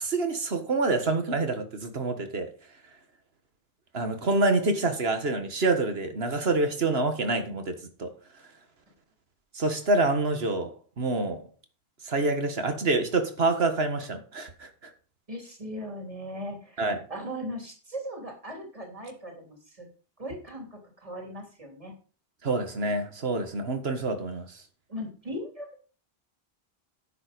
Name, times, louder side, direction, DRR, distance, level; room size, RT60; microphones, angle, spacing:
voice 1, 0.0-2.5 3.9-8.1 9.5-11.4 12.0-14.9 16.8-17.0 22.4-24.6, right 3 dB, 70° right, 1.8 m, -27 dB
voice 2, 15.3-16.8 17.1-19.9 20.2-21.9 24.9-25.8, equal, 35° right, 3.2 m, -38 dB
10.0 x 7.6 x 5.2 m
omnidirectional pair, 1.1 m